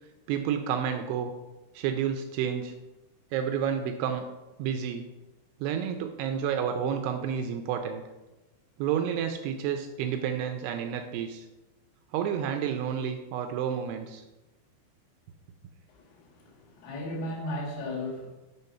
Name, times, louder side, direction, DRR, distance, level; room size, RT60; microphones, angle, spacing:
voice 1, 0.3-1.3 1.7-2.7 3.3-4.2 4.6-5.1 5.6-8.0 8.8-11.5 12.1-14.2, right 8 dB, 85° right, 5 dB, 2.3 m, -30 dB
voice 2, 15.9-18.3, left 1 dB, 80° left, -3 dB, 4.2 m, -36 dB
8.4 x 3.8 x 5.5 m, 1.0 s
omnidirectional pair, 5.2 m